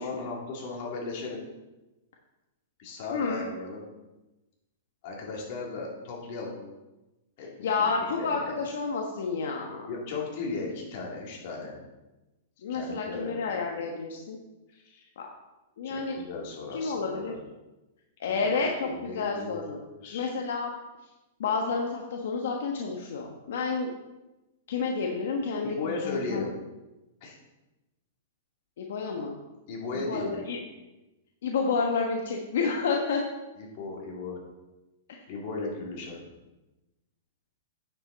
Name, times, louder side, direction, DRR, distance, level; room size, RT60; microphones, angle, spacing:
voice 1, 0.0-1.4 2.8-3.8 5.0-6.6 7.4-8.6 9.9-11.8 12.7-13.6 14.7-15.0 15.8-17.4 18.2-20.3 25.6-26.5 27.2-27.4 29.7-30.5 33.6-34.4 35.3-36.2, left 3 dB, 50° left, -2 dB, 2.8 m, -36 dB
voice 2, 3.1-3.5 7.6-9.9 12.6-14.4 15.2-15.3 15.8-16.2 16.7-17.3 18.2-19.8 20.1-20.7 21.4-23.9 24.7-25.7 26.0-26.5 28.8-29.4 29.9-30.6 31.4-33.2 35.1-35.2, left 4 dB, 75° left, 0 dB, 1.2 m, -30 dB
9.2 x 7.1 x 4.1 m, 1.0 s
hypercardioid pair, 150°, 0 cm